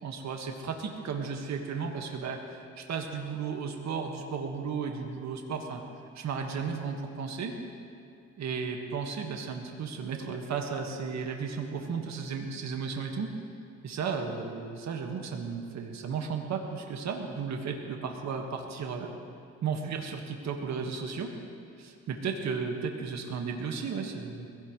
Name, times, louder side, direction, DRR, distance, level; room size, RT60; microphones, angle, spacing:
voice 1, 0.0-5.8 6.2-7.6 8.4-13.3 13.8-19.1 19.6-21.3 21.8-24.5, right 5 dB, 65° right, 3 dB, 1.8 m, -34 dB
21.5 x 17.0 x 3.2 m, 2.6 s
cardioid pair, 90°, 30 cm